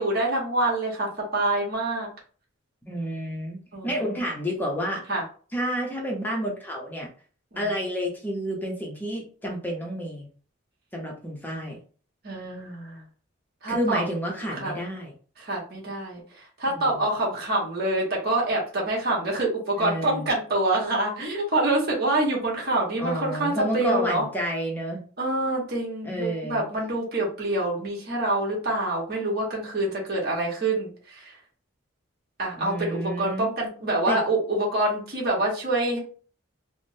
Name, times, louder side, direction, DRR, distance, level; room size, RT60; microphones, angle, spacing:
voice 1, 0.0-2.1 3.7-3.9 5.1-5.2 7.5-7.7 12.2-13.0 13.6-14.0 14.5-14.8 15.4-24.3 25.2-31.4 32.4-36.0, right 2 dB, 50° right, -4 dB, 1.2 m, -26 dB
voice 2, 2.9-5.0 5.5-7.1 7.6-10.3 10.9-11.8 13.7-15.1 16.7-17.0 19.8-20.3 23.0-25.0 26.0-26.6 32.6-33.5 34.1-34.2, equal, 10° left, -1 dB, 0.6 m, -30 dB
3.5 x 2.1 x 2.6 m, 0.41 s
head